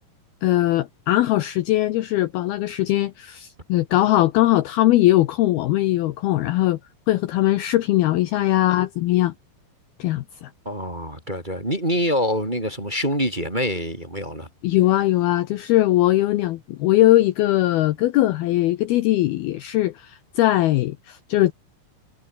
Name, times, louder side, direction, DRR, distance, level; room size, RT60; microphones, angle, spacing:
voice 1, 0.4-6.8 7.1-9.3 10.0-10.5 14.6-21.5, left 15 dB, 85° left, 2.2 m, -20 dB
voice 2, 10.6-14.5, equal, 10° right, 2.6 m, -25 dB
omnidirectional pair, 5.6 m